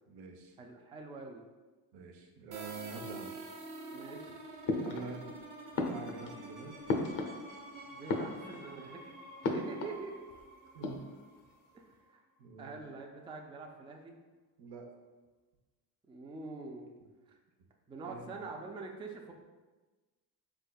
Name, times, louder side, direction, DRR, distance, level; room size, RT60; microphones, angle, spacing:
voice 1, 0.1-0.6 1.9-3.3 4.8-5.3 5.9-6.7 10.7-11.0 12.4-12.8 14.6-14.9 18.0-18.4, right 4 dB, 70° right, 2 dB, 0.8 m, -45 dB
voice 2, 0.6-1.4 3.9-4.4 7.9-9.0 9.5-10.2 11.7-12.2 12.6-14.1 16.1-16.9 17.3-17.4 17.9-19.3, right 3 dB, 15° right, 2 dB, 0.3 m, -45 dB
sound 1, 2.5-12.1, right 2 dB, 50° right, 1.1 m, -48 dB
sound 2, 4.7-5.4 5.7-7.7 8.0-8.8 9.4-10.0 10.3-10.4 10.7-11.4, left 3 dB, 50° left, 0.7 m, -35 dB
4.3 x 3.5 x 2.3 m, 1.2 s
cardioid pair, 90°, 42 cm